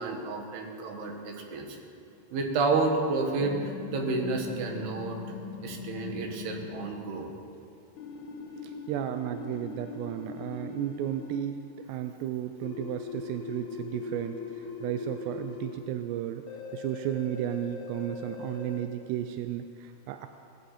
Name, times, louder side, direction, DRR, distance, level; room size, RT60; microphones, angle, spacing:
voice 1, 0.0-1.8 2.3-5.2 5.6-7.3, right 3 dB, 70° right, 2 dB, 3.6 m, -30 dB
sound 1, 3.4-6.9 8.0-11.5 12.6-15.8 16.5-18.9, left 5 dB, 65° left, 2.0 m, -41 dB
voice 2, 8.6-11.6 11.9-16.4 16.7-20.3, right 11 dB, 90° right, 7 dB, 2.8 m, -34 dB
18.5 x 17.0 x 4.2 m, 2.7 s
omnidirectional pair, 4.8 m